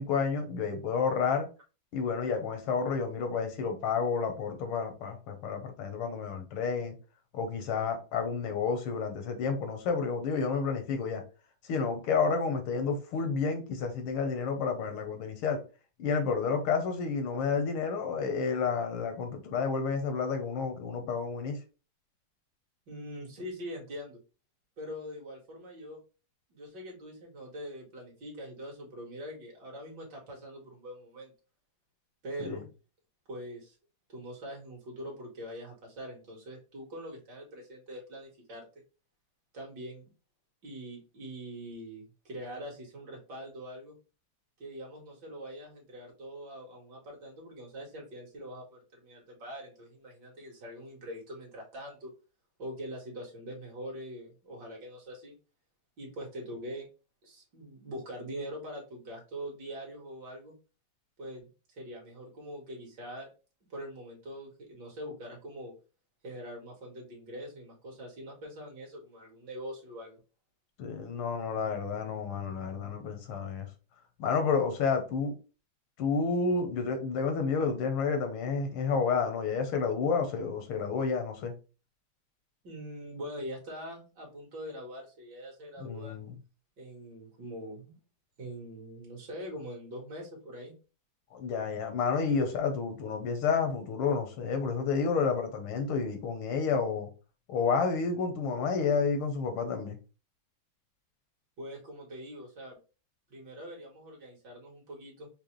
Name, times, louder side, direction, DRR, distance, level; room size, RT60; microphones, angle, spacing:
voice 1, 0.0-1.5 1.9-7.0 7.3-11.2 11.6-15.6 16.0-21.6 32.4-32.6 70.8-73.7 74.2-75.3 76.0-81.6 85.8-86.4 91.3-97.1 97.5-100.0, left 5 dB, 80° left, 1.7 m, -30 dB
voice 2, 22.9-24.2 24.8-26.0 26.5-31.3 32.2-32.7 33.3-33.8 34.1-38.7 39.5-40.1 40.6-44.0 44.6-52.1 52.6-55.4 56.0-56.9 57.2-60.6 61.2-63.3 63.7-65.7 66.2-70.2 82.6-86.2 86.8-88.0 88.4-90.7 101.6-102.8 103.3-105.3, equal, 60° right, 1.8 m, -43 dB
5.2 x 2.0 x 3.0 m
omnidirectional pair, 2.3 m